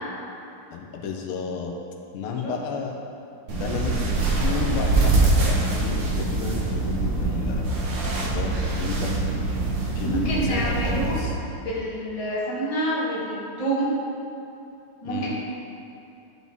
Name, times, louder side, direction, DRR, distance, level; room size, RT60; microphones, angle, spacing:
voice 1, 0.7-1.7 2.1-3.0 3.5-7.7 8.2-9.3 9.9-11.4 15.0-15.3, left 5 dB, 90° left, 1 dB, 1.6 m, -32 dB
sound 1, 3.5-11.2, right 2 dB, 80° right, 2.0 m, -24 dB
voice 2, 10.0-11.1 11.6-13.9 15.0-15.3, right 1 dB, 20° left, -6 dB, 1.0 m, -27 dB
10.5 x 4.2 x 3.5 m, 2.8 s
omnidirectional pair, 2.3 m